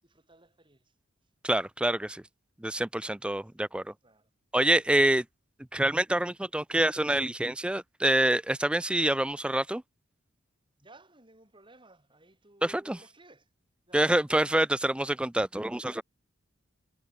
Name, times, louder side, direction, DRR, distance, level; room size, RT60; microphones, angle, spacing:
voice 1, 0.0-1.0 3.3-4.3 6.4-6.7 10.8-13.5 13.9-14.1, right 2 dB, 25° right, 7.1 m, -59 dB
voice 2, 1.4-2.2 2.6-3.8 4.5-5.2 5.7-9.8 12.6-13.0 13.9-16.0, right 1 dB, 5° right, 0.4 m, -26 dB
head